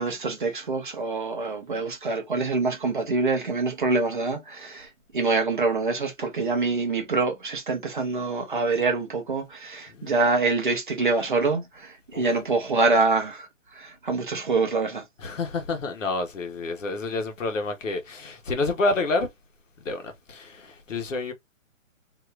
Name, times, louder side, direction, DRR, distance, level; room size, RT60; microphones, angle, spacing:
voice 1, 0.0-4.9 5.1-13.5 13.7-15.0, right 3 dB, 40° right, 0.7 m, -25 dB
voice 2, 15.2-19.3 19.8-21.3, left 3 dB, 70° left, 1.1 m, -29 dB
2.8 x 2.5 x 3.2 m
hypercardioid pair, 180°, 40 cm